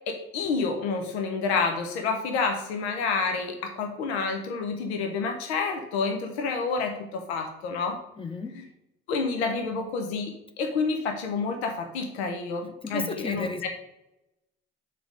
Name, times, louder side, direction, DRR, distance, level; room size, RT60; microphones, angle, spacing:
voice 1, 0.1-8.0 9.1-13.7, left 4 dB, 75° left, 5 dB, 0.9 m, -29 dB
voice 2, 8.2-8.5 12.8-13.7, left 2 dB, 15° left, 8 dB, 0.9 m, -33 dB
5.9 x 4.1 x 6.2 m, 0.89 s
figure-of-eight pair, 50°, 33 cm